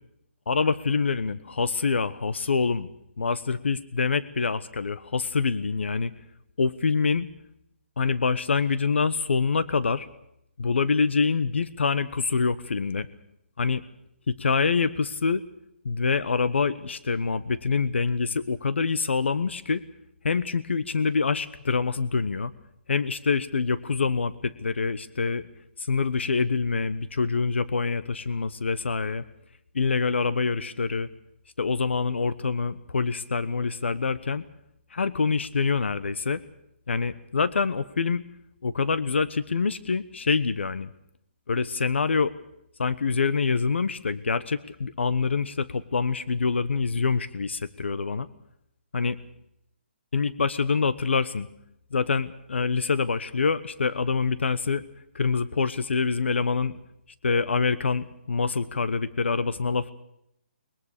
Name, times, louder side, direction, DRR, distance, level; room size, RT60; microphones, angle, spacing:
voice 1, 0.5-2.9 3.2-6.1 6.6-7.3 8.0-10.1 10.6-13.1 13.6-13.8 14.3-15.4 15.8-19.8 20.2-22.5 22.9-25.5 25.8-29.2 29.7-31.1 31.6-34.4 34.9-36.4 36.9-38.2 38.6-40.9 41.5-42.3 42.8-48.3 48.9-49.2 50.1-51.5 51.9-54.8 55.1-56.8 57.2-59.9, left 5 dB, 80° left, 15 dB, 1.1 m, -25 dB
22.0 x 22.0 x 6.7 m, 0.77 s
hypercardioid pair, 180°, 6 cm